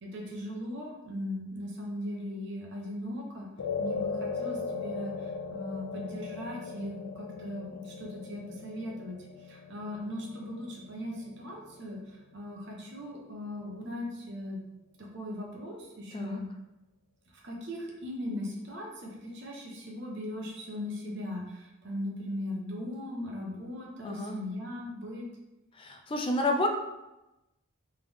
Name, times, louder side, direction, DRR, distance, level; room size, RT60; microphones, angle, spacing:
voice 1, 0.0-3.5 3.8-9.2 9.5-12.0 12.3-14.6 15.1-16.5 17.4-25.2, left 1 dB, 50° right, -2 dB, 0.9 m, -38 dB
sound 1, 3.6-12.1, left 4 dB, 90° left, 0.4 m, -38 dB
voice 2, 24.0-24.4 25.7-26.7, left 2 dB, 25° left, 3 dB, 0.4 m, -30 dB
3.6 x 3.3 x 3.4 m, 0.98 s
head